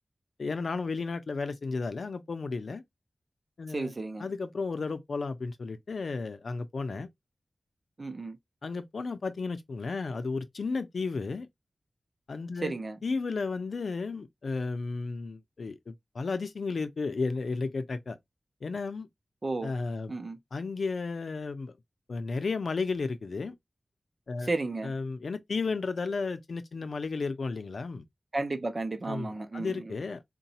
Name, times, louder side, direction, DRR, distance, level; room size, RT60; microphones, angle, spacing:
voice 1, 0.4-2.8 3.6-3.9 4.2-7.1 8.6-11.5 12.3-12.7 13.0-18.2 18.6-19.1 19.6-20.1 20.5-21.7 22.1-23.5 24.3-24.5 24.8-28.0 29.1-30.2, left 4 dB, 80° left, 0.5 m, -33 dB
voice 2, 3.7-4.3 8.0-8.4 12.6-13.0 19.4-19.7 20.1-20.4 24.4-24.9 28.3-29.9, right 2 dB, 45° right, 0.6 m, -33 dB
3.9 x 2.2 x 2.7 m
wide cardioid pair, 85°, 0 cm